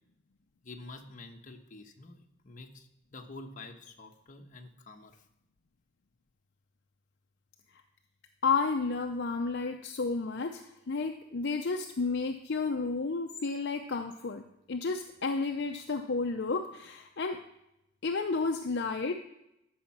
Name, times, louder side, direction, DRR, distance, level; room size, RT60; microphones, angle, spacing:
voice 1, 0.6-5.2, left 2 dB, 40° left, 3 dB, 1.1 m, -48 dB
voice 2, 8.4-17.4 18.0-19.1, left 4 dB, 60° left, 4 dB, 0.6 m, -32 dB
12.5 x 6.5 x 6.0 m, 0.84 s
head